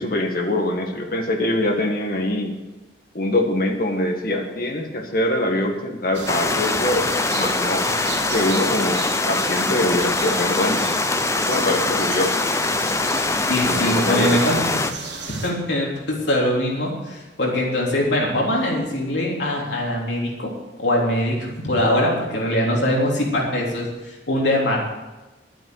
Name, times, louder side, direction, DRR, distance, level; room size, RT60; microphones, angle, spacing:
voice 1, 0.0-2.5 3.1-7.9 8.3-10.9 11.4-12.4 13.6-14.4, left 1 dB, 50° left, 3 dB, 1.8 m, -23 dB
sound 1, 6.1-15.5, right 4 dB, 75° right, 2.7 m, -33 dB
sound 2, 6.3-14.9, left 3 dB, 15° left, 0.5 m, -23 dB
voice 2, 13.5-14.6 15.3-20.5 20.8-24.9, left 1 dB, 75° left, -2 dB, 3.6 m, -22 dB
11.5 x 8.9 x 8.1 m, 1.1 s
head